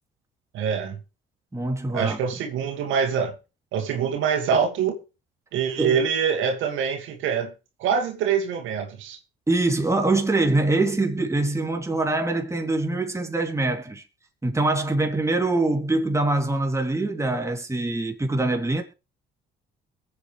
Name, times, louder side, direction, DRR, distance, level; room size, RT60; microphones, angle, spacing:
voice 1, 0.5-1.0 1.9-3.3 3.7-5.0 5.5-7.5 7.8-9.2, right 7 dB, 85° right, 2.4 m, -24 dB
voice 2, 1.5-2.2 5.8-6.0 9.5-14.0 14.4-18.8, right 2 dB, 15° right, 3.5 m, -24 dB
22.5 x 8.3 x 3.5 m
cardioid pair, 80°, 20 cm